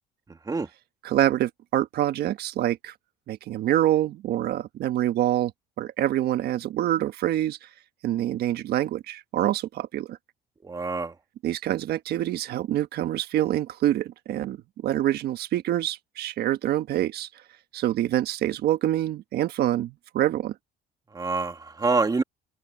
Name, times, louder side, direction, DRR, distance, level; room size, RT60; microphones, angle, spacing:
voice 1, 1.0-2.9 3.3-5.5 5.8-7.7 8.0-10.2 11.4-14.6 14.8-17.3 17.7-20.5, right 13 dB, 70° right, 1.3 m, -26 dB
voice 2, 10.6-11.1 21.1-22.2, right 4 dB, 20° right, 1.8 m, -26 dB
cardioid pair, 110°, 17 cm